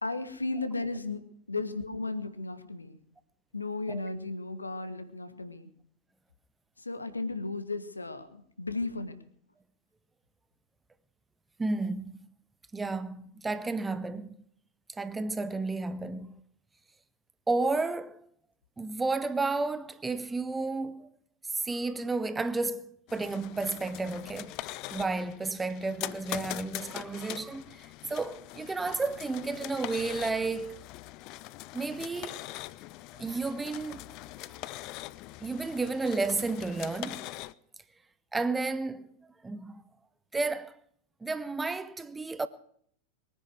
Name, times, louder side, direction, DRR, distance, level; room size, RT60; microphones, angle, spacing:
voice 1, 0.0-3.0 3.5-5.7 6.8-9.2, left 3 dB, 80° left, 1.7 m, -35 dB
voice 2, 11.6-12.2 12.7-14.4 14.9-16.3 17.5-18.2 18.8-21.1 21.5-24.6 24.9-30.8 31.7-32.5 33.1-34.1 35.4-37.3 38.3-39.2 39.4-39.8 40.3-40.7 41.2-42.5, right 3 dB, 10° right, 1.1 m, -32 dB
sound 1, 23.1-37.5, left 17 dB, 40° left, 0.6 m, -42 dB
22.0 x 10.0 x 6.2 m
figure-of-eight pair, 90°, 0 cm